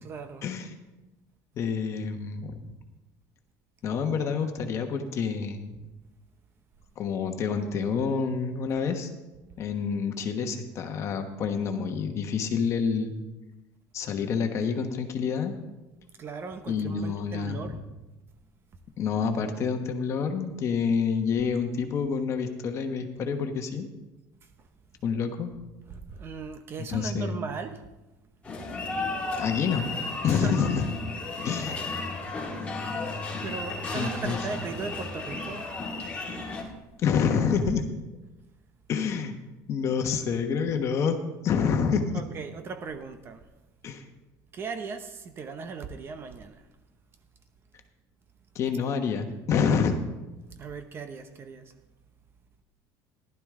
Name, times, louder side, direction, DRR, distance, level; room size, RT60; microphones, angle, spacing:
voice 1, 0.0-0.4 16.2-17.8 24.6-24.7 25.9-27.9 30.2-30.6 31.3-31.6 33.4-35.7 42.1-43.5 44.5-46.7 50.6-51.7, right 5 dB, 30° right, 0.9 m, -38 dB
voice 2, 1.6-2.6 3.8-5.7 7.0-9.1 9.6-13.1 13.9-15.5 16.7-17.6 19.0-23.9 25.0-25.5 26.9-27.3 29.4-29.9 30.2-30.8 31.4-31.8 33.9-34.4 37.0-37.8 38.9-39.3 39.7-41.2 41.4-42.2 43.8-44.0 48.5-50.0, left 6 dB, 40° left, 1.2 m, -27 dB
sound 1, 28.4-36.6, left 3 dB, 15° left, 2.2 m, -34 dB
15.0 x 12.0 x 3.7 m
cardioid pair, 155°, 8 cm